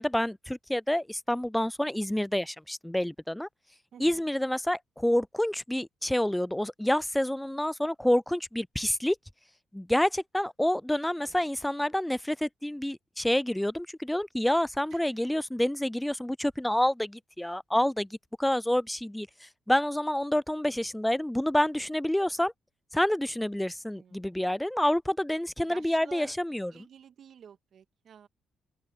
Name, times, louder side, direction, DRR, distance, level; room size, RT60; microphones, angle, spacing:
voice 1, 0.0-3.5 4.0-9.2 9.7-18.1 18.4-19.3 19.7-22.5 22.9-26.7, left 1 dB, 5° left, 0.3 m, -28 dB
voice 2, 3.9-4.3 11.2-11.5 14.9-15.1 23.9-24.3 25.6-26.4 26.7-28.3, right 8 dB, 60° right, 2.0 m, -51 dB
open air
cardioid pair, 90°, 0 cm